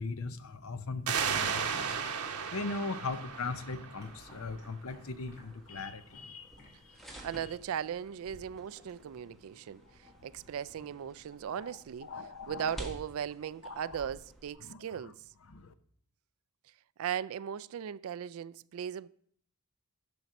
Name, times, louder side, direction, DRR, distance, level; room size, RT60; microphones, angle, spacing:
voice 1, 0.0-2.1 2.5-6.6 6.9-7.0 11.5-12.8 13.6-14.1 14.6-15.1 15.5-15.7, left 3 dB, 70° left, 0.7 m, -40 dB
sound 1, 1.1-4.4, right 6 dB, 90° right, 1.1 m, -34 dB
sound 2, 2.7-6.3 6.5-6.7 7.1-7.3 8.2-9.3, left 1 dB, 45° left, 2.5 m, -55 dB
sound 3, 3.9-14.5, right 1 dB, ahead, 1.3 m, -52 dB
voice 2, 7.2-12.1 12.5-15.2 17.0-19.1, right 8 dB, 70° right, 0.3 m, -38 dB
11.0 x 5.2 x 6.0 m
head